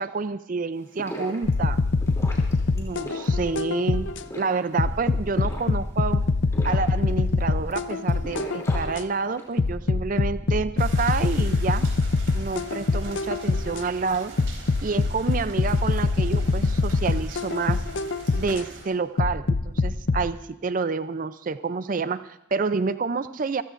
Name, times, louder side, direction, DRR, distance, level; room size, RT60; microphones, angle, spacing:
voice 1, 0.0-1.8 2.7-4.1 4.4-6.2 6.6-11.9 12.3-14.3 14.8-17.8 18.4-23.6, right 4 dB, 40° right, 13 dB, 0.4 m, -28 dB
sound 1, 0.7-9.6, equal, 15° left, 2.9 m, -41 dB
sound 2, 1.4-4.2 4.8-9.0 9.6-13.8 14.4-18.6 19.2-20.2, left 3 dB, 65° left, 0.5 m, -24 dB
sound 3, 10.8-18.8, right 2 dB, 70° right, 4.0 m, -42 dB
25.5 x 14.5 x 2.5 m, 0.87 s
head